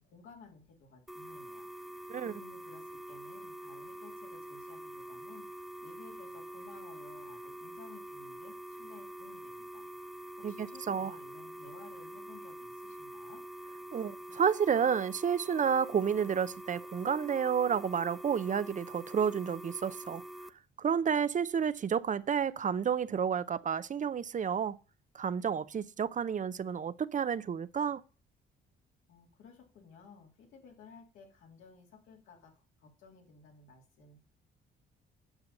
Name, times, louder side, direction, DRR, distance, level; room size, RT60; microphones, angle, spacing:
voice 1, 0.0-1.7 2.3-13.4 29.1-34.2, left 4 dB, 90° left, 2.9 m, -56 dB
sound 1, 1.1-20.5, right 1 dB, ahead, 0.9 m, -46 dB
voice 2, 10.4-11.1 13.9-20.2 20.8-24.8 25.1-28.0, right 7 dB, 40° right, 0.6 m, -30 dB
9.7 x 6.9 x 5.4 m
cardioid pair, 90°, 20 cm